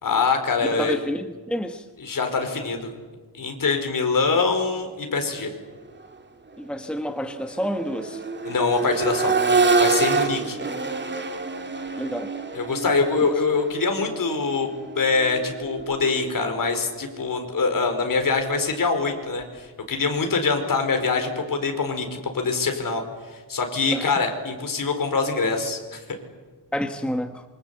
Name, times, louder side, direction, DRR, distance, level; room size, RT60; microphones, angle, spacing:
voice 1, 0.0-1.0 2.0-2.9 3.3-5.5 8.4-9.3 9.8-10.6 12.5-14.7 14.9-23.0 23.3-26.0, left 4 dB, 50° left, 5 dB, 4.7 m, -24 dB
voice 2, 0.7-1.9 6.6-8.2 12.0-12.3 13.2-13.4 23.9-24.1 26.7-27.4, equal, ahead, 7 dB, 1.2 m, -29 dB
Accelerating revving vroom, 5.9-6.1 6.5-16.4 18.1-18.2, right 4 dB, 25° right, 2.4 m, -27 dB
27.0 x 25.0 x 8.4 m, 1.3 s
wide cardioid pair, 140°, 42 cm